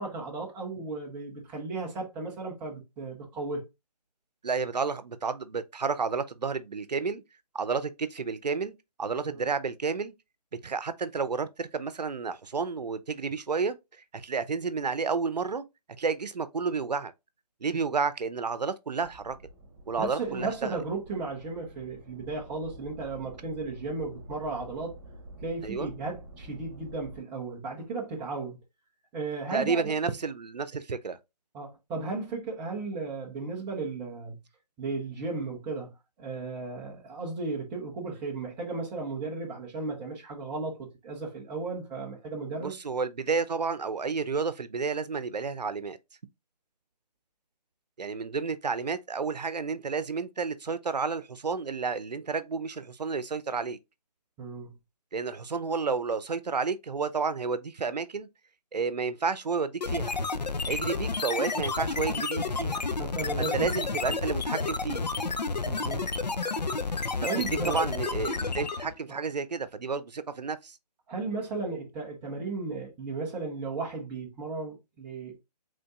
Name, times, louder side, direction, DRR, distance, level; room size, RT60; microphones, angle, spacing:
voice 1, 0.0-3.6 9.3-9.4 20.0-24.9 25.4-28.6 29.1-30.1 31.5-34.3 34.8-42.8 54.4-54.7 63.0-64.0 65.6-66.1 67.3-67.9 69.1-69.2 71.1-75.4, right 3 dB, 5° right, 0.6 m, -35 dB
voice 2, 4.4-7.2 7.5-8.7 9.0-10.1 10.6-13.8 14.1-15.6 16.0-17.1 17.6-19.4 19.9-20.8 25.6-25.9 29.5-31.2 42.6-46.0 48.0-53.8 55.1-58.3 58.7-60.1 60.7-62.8 63.4-65.0 67.2-67.3 67.7-70.8, right 5 dB, 75° right, 0.7 m, -31 dB
sound 1, 19.0-27.2, right 1 dB, 25° right, 2.3 m, -49 dB
sound 2, 59.8-69.0, left 4 dB, 85° left, 0.7 m, -31 dB
5.1 x 3.7 x 2.5 m
figure-of-eight pair, 155°, 21 cm